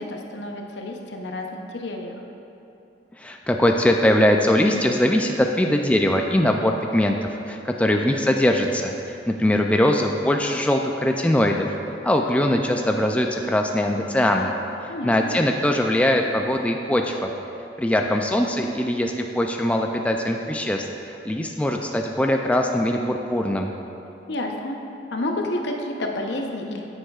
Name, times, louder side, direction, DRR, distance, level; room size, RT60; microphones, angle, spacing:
voice 1, 0.0-2.2 14.9-15.3 24.3-24.8 25.1-26.8, left 1 dB, 75° left, 2 dB, 0.8 m, -30 dB
voice 2, 3.2-7.2 7.5-11.7 12.0-14.6 15.0-17.3 17.8-23.7, left 1 dB, 10° left, 2 dB, 0.3 m, -21 dB
9.3 x 8.9 x 2.4 m, 2.8 s
head